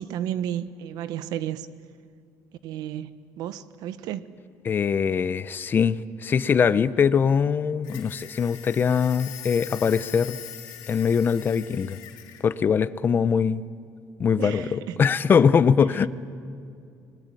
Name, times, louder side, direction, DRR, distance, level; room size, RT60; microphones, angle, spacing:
voice 1, 0.0-1.7 2.6-4.2 14.4-15.0, right 11 dB, 85° right, 14 dB, 1.0 m, -32 dB
voice 2, 4.6-10.4 10.9-12.0 12.4-13.6 14.2-16.1, left 6 dB, 30° left, 15 dB, 0.6 m, -22 dB
sound 1, 7.8-12.4, left 12 dB, 90° left, 3.2 m, -42 dB
28.5 x 21.0 x 9.0 m, 2.4 s
cardioid pair, 155°, 7 cm